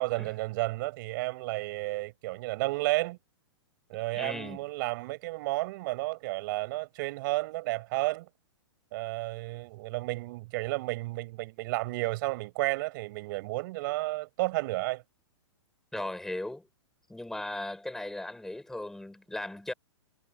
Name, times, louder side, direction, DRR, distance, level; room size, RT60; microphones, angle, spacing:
voice 1, 0.0-3.2 3.9-8.3 8.9-15.0 16.0-16.1, right 21 dB, 40° right, 7.1 m, -32 dB
voice 2, 4.1-4.6 15.9-16.7 17.1-19.7, left 1 dB, 5° left, 6.6 m, -37 dB
hypercardioid pair, 155°, 16 cm